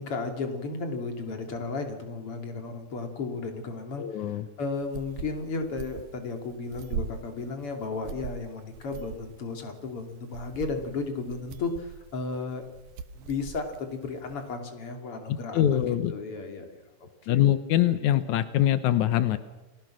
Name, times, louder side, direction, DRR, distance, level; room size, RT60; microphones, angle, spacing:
voice 1, 0.0-12.6 13.1-15.8 16.1-16.8 17.3-17.4, left 4 dB, 35° left, 5 dB, 3.3 m, -34 dB
voice 2, 4.0-4.5 15.3-16.1 17.3-19.4, left 12 dB, 85° left, 12 dB, 1.6 m, -24 dB
sound 1, 4.7-14.5, right 7 dB, 65° right, 2.1 m, -41 dB
29.5 x 20.5 x 6.3 m, 1.1 s
omnidirectional pair, 5.0 m